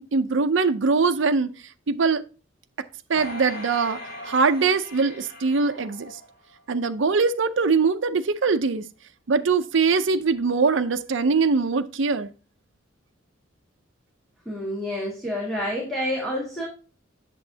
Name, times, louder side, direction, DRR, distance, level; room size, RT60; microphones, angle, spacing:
voice 1, 0.0-2.2 3.1-6.2 6.7-8.8 9.3-12.3, right 4 dB, 70° right, 0.6 m, -22 dB
sound 1, 3.2-6.6 7.1-7.2, left 1 dB, 50° left, 3.6 m, -39 dB
voice 2, 14.5-16.7, left 1 dB, ahead, 1.9 m, -28 dB
8.3 x 7.0 x 2.7 m
head